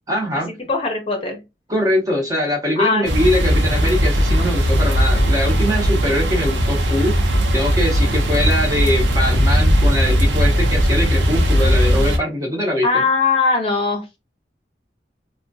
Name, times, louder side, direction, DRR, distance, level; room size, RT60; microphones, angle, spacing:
voice 1, 0.1-0.5 1.7-7.2 7.5-13.0, left 1 dB, 20° right, 0 dB, 0.8 m, -22 dB
voice 2, 0.7-1.4 2.8-3.3 12.8-14.0, left 4 dB, 30° left, 3 dB, 0.7 m, -20 dB
sound 1, 3.0-12.2, equal, 90° right, 0.7 m, -17 dB
3.4 x 2.2 x 2.7 m, 0.24 s
head